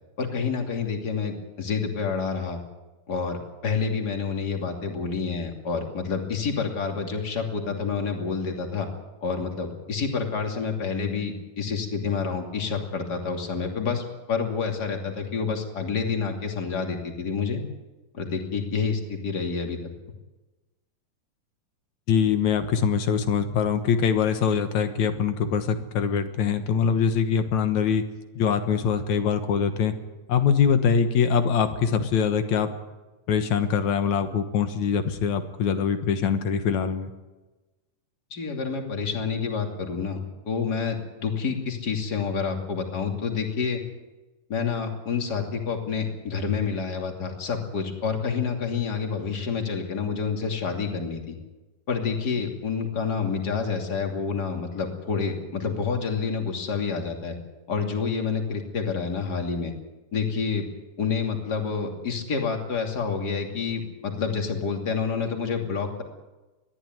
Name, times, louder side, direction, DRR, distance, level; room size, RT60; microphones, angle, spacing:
voice 1, 0.2-2.6 3.1-8.9 9.2-17.6 18.1-19.8 38.3-43.8 44.5-51.4 51.9-57.4 57.7-59.7 60.1-60.7 61.0-66.0, left 5 dB, 30° left, 3 dB, 2.9 m, -28 dB
voice 2, 22.1-28.0 28.4-29.9 30.3-32.7 33.3-37.1, left 6 dB, 65° left, 9 dB, 2.5 m, -23 dB
22.0 x 14.0 x 9.5 m, 1.1 s
omnidirectional pair, 3.9 m